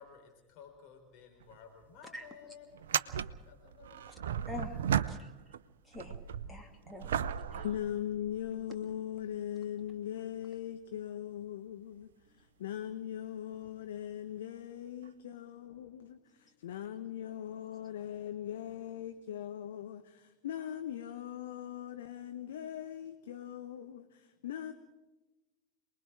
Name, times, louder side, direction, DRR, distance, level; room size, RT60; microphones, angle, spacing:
voice 1, 0.0-4.3, left 6 dB, 45° left, 4.2 m, -55 dB
sound 1, 1.4-1.5 1.8-1.9 2.7-5.6 5.9-8.6 9.3-9.4 13.5-13.7 15.0-15.1, right 9 dB, 65° right, 0.6 m, -35 dB
voice 2, 4.5-4.8 5.1-5.3 5.8-6.2 6.5-7.7, left 2 dB, 10° left, 2.5 m, -46 dB
voice 3, 7.6-24.7, left 10 dB, 65° left, 1.1 m, -40 dB
27.5 x 20.5 x 4.9 m
figure-of-eight pair, 80°, 0 cm